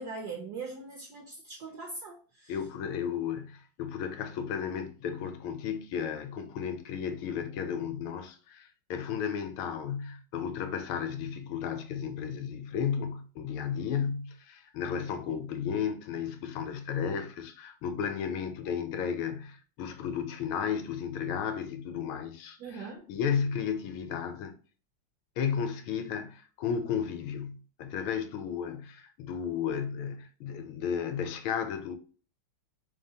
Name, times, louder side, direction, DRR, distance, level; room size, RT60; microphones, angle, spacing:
voice 1, 0.0-2.6 22.6-23.0, right 4 dB, 75° right, 0.9 m, -41 dB
voice 2, 2.5-24.5 25.4-32.0, left 7 dB, 75° left, 1.4 m, -34 dB
3.8 x 3.6 x 2.7 m
omnidirectional pair, 2.4 m